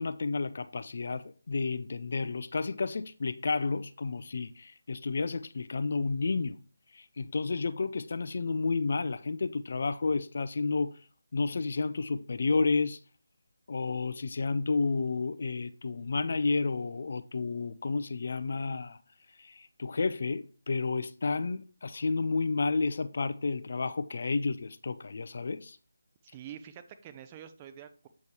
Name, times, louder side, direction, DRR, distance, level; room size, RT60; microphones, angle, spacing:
voice 1, 0.0-6.6 6.9-11.0 11.3-13.0 13.7-19.0 19.4-25.8, left 4 dB, 55° left, 0.4 m, -31 dB
voice 2, 26.2-28.1, right 10 dB, 20° right, 0.5 m, -47 dB
8.2 x 6.4 x 2.9 m
figure-of-eight pair, 160°, 0 cm